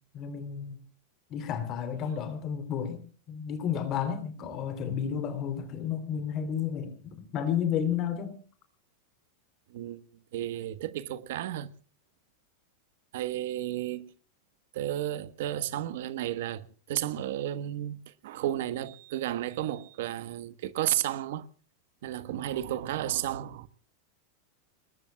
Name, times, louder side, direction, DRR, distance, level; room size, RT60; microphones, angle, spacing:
voice 1, 0.1-0.8 1.3-8.4, left 8 dB, 30° left, 3.2 m, -32 dB
voice 2, 9.7-10.0 10.3-11.7 13.1-14.1 14.7-21.5 22.0-23.7, right 12 dB, 65° right, 1.2 m, -33 dB
29.5 x 20.0 x 2.3 m
supercardioid pair, 165°, 0 cm